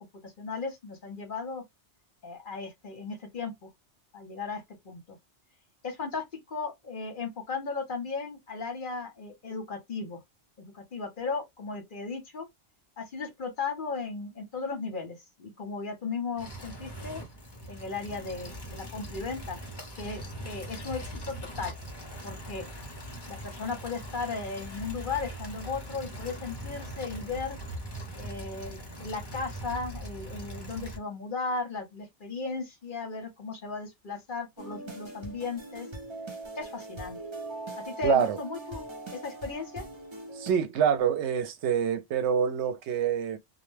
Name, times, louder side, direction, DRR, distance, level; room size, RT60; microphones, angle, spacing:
voice 1, 0.2-1.6 2.2-3.7 4.1-5.2 5.8-10.2 10.6-12.5 13.0-17.2 17.7-19.6 19.9-21.8 22.2-22.7 23.3-27.6 28.2-35.9 36.6-37.2 37.8-38.9 39.1-39.8, left 4 dB, 50° left, 0.9 m, -36 dB
sound 1, 16.4-31.0, right 1 dB, 25° left, 0.6 m, -41 dB
sound 2, 34.6-40.5, right 2 dB, 30° right, 0.6 m, -41 dB
voice 2, 38.0-38.4 40.3-43.4, right 8 dB, 80° right, 0.9 m, -26 dB
2.2 x 2.1 x 3.1 m
omnidirectional pair, 1.2 m